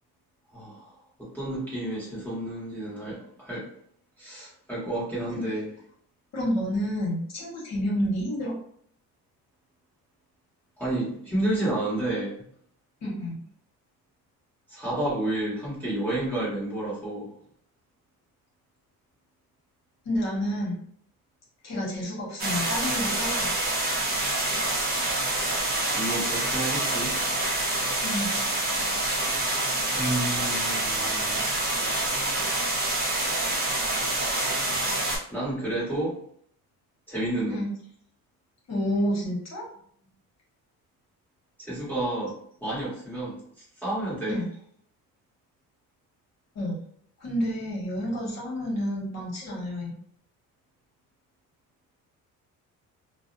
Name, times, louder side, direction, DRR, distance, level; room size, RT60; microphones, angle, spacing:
voice 1, 0.5-0.9 1.2-3.7 4.2-5.7 10.8-12.4 14.7-17.3 25.9-27.2 30.0-31.4 35.3-36.1 37.1-37.6 41.6-42.3 42.6-44.4, right 1 dB, 5° left, -9 dB, 1.0 m, -30 dB
voice 2, 6.3-8.5 13.0-13.4 20.0-20.8 21.6-23.5 28.0-28.4 37.5-37.7 38.7-39.6 44.3-44.5 46.5-46.8 47.2-49.9, equal, 50° left, -4 dB, 1.1 m, -29 dB
sound 1, 22.4-35.2, right 2 dB, 25° right, 0.9 m, -27 dB
2.4 x 2.1 x 2.5 m, 0.62 s
cardioid pair, 125°, 35 cm